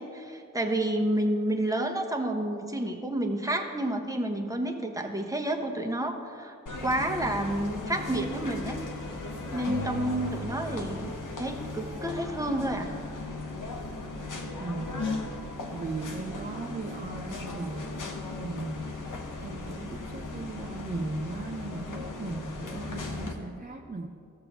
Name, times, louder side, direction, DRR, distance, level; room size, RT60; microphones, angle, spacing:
voice 1, 0.0-6.5 6.8-8.8 9.5-12.9, right 1 dB, 10° right, 2 dB, 1.0 m, -30 dB
sound 1, 6.7-23.3, left 2 dB, 70° left, 1.0 m, -37 dB
sound 2, 9.7-12.3, right 4 dB, 85° right, 0.7 m, -39 dB
voice 2, 14.6-15.2 15.7-18.0 18.4-18.9 19.4-24.1, right 3 dB, 25° right, 1 dB, 0.6 m, -37 dB
15.0 x 6.7 x 3.0 m, 2.4 s
cardioid pair, 50°, 32 cm